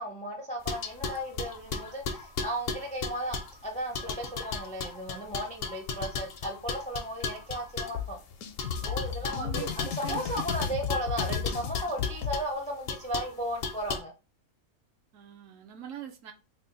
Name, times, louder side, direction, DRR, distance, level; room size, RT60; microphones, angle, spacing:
voice 1, 0.0-3.4 3.6-8.2 8.8-14.1, equal, 10° left, 0.3 m, -35 dB
sound 1, 0.7-3.6 3.9-8.0 8.6-12.4 12.9-13.3 13.6-14.0, left 4 dB, 60° left, 0.6 m, -35 dB
sound 2, 7.9-12.3, left 8 dB, 80° left, 1.0 m, -34 dB
voice 2, 9.2-10.2 15.1-16.3, right 9 dB, 70° right, 0.9 m, -43 dB
3.4 x 2.2 x 3.9 m
omnidirectional pair, 1.5 m